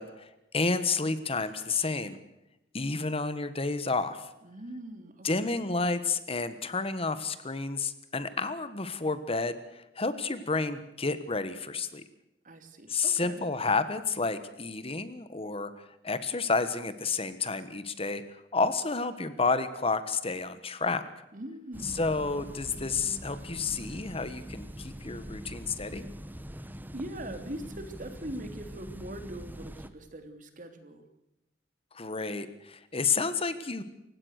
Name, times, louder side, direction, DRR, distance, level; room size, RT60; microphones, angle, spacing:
voice 1, 0.0-2.2 2.7-4.3 5.2-12.0 12.9-21.0 21.8-26.1 31.9-33.8, left 4 dB, 35° left, 12 dB, 1.4 m, -30 dB
voice 2, 4.4-5.5 12.4-13.4 21.3-22.1 26.9-31.0, right 1 dB, 50° right, 7 dB, 3.1 m, -42 dB
sound 1, 21.7-29.9, equal, 10° right, 1.2 m, -43 dB
28.5 x 16.5 x 6.6 m, 0.91 s
head